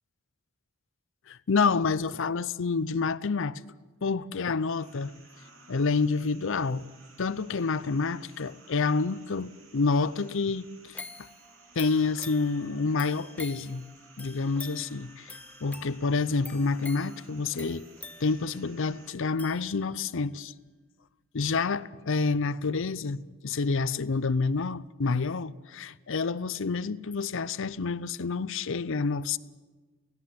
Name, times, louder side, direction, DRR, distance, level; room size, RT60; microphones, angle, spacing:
voice 1, 1.3-3.6 4.0-5.1 5.7-6.9 7.2-11.0 11.8-13.9 14.2-17.9 18.2-20.5 21.3-29.4, left 4 dB, 65° left, 0.6 m, -28 dB
sound 1, 4.8-19.1, right 3 dB, 65° right, 3.2 m, -56 dB
sound 2, 10.9-20.2 20.7-20.8, left 3 dB, 5° left, 0.6 m, -46 dB
17.5 x 16.5 x 9.4 m
head